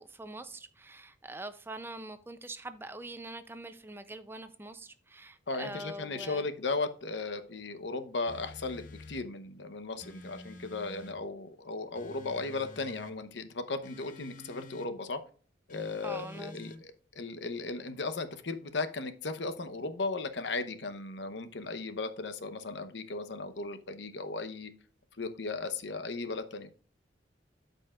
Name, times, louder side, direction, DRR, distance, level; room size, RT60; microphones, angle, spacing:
voice 1, 0.0-6.5 16.0-16.6, right 2 dB, 10° right, 0.5 m, -44 dB
voice 2, 5.5-15.2 15.7-24.7 25.2-26.7, left 3 dB, 75° left, 0.9 m, -36 dB
sound 1, 8.3-9.3 10.0-11.2 11.9-13.2 13.8-14.9 15.7-16.8, left 2 dB, 45° left, 0.9 m, -48 dB
13.0 x 5.3 x 2.4 m
head